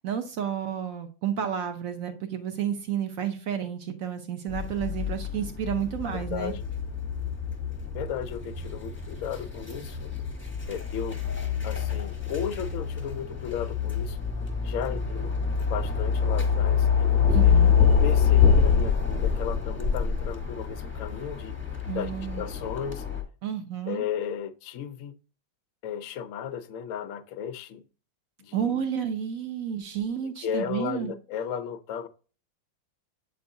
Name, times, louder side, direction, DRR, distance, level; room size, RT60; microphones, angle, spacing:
voice 1, 0.0-6.5 17.3-17.7 21.9-22.4 23.4-24.0 28.5-31.1, right 9 dB, 75° right, 8 dB, 0.7 m, -31 dB
sound 1, 4.5-23.2, left 7 dB, 10° left, 0.5 m, -26 dB
voice 2, 6.1-6.6 7.9-10.1 10.7-11.2 11.6-14.2 14.6-15.3 15.7-17.5 18.0-21.6 21.9-23.0 23.9-25.1 25.8-27.8 28.4-28.8 30.4-32.1, left 8 dB, 75° left, 8 dB, 0.7 m, -35 dB
7.9 x 4.5 x 2.6 m, 0.35 s
omnidirectional pair, 2.2 m